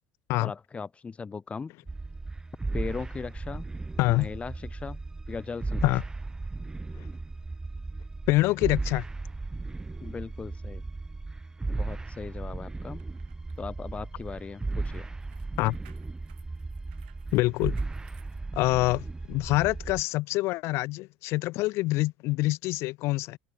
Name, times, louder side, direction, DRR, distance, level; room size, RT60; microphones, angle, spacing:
voice 1, 0.4-1.7 2.7-3.7 4.1-5.0 5.3-5.9 8.6-8.7 10.0-10.8 11.7-13.0 13.6-15.2, left 5 dB, 25° left, 2.0 m, -38 dB
sound 1, 1.9-20.0, right 3 dB, 15° right, 1.1 m, -36 dB
voice 2, 8.3-9.1 15.6-15.7 17.3-17.8 18.6-23.4, left 20 dB, 60° left, 0.5 m, -26 dB
sound 2, 12.8-19.1 19.5-19.7, right 18 dB, 80° right, 2.8 m, -63 dB
hypercardioid pair, 85°, 5 cm